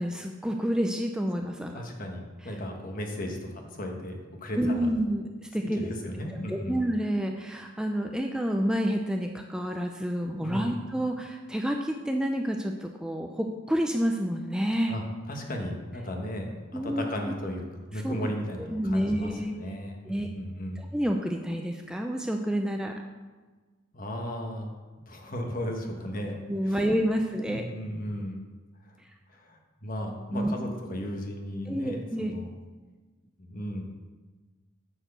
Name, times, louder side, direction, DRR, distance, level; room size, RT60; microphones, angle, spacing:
voice 1, 0.0-1.8 4.6-5.9 6.5-14.9 16.7-17.0 18.0-18.2 18.7-19.6 20.1-20.3 20.8-22.9 26.5-27.7 29.0-29.1 30.3-30.5 31.7-32.4, equal, 5° right, 3 dB, 0.5 m, -29 dB
voice 2, 1.7-4.9 5.7-6.8 10.4-10.7 14.9-17.6 17.9-20.9 23.9-24.7 25.1-26.9 27.4-28.4 28.8-29.0 29.3-32.5 33.4-33.8, equal, 45° left, 2 dB, 1.3 m, -35 dB
9.8 x 4.6 x 6.8 m, 1.3 s
head